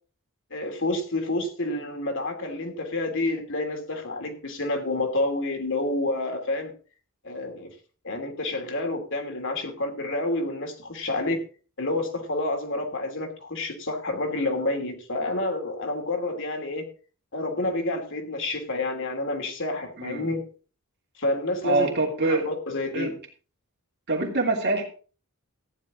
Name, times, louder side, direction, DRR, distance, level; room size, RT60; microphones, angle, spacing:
voice 1, 0.5-6.7 7.2-7.7 8.0-11.4 11.8-16.8 17.3-20.4 21.2-21.9 22.2-23.2, left 2 dB, 60° left, 4 dB, 2.7 m, -29 dB
voice 2, 21.6-22.5 22.9-23.1 24.1-24.9, right 2 dB, 50° right, 1 dB, 2.8 m, -24 dB
14.5 x 10.0 x 3.7 m, 0.38 s
head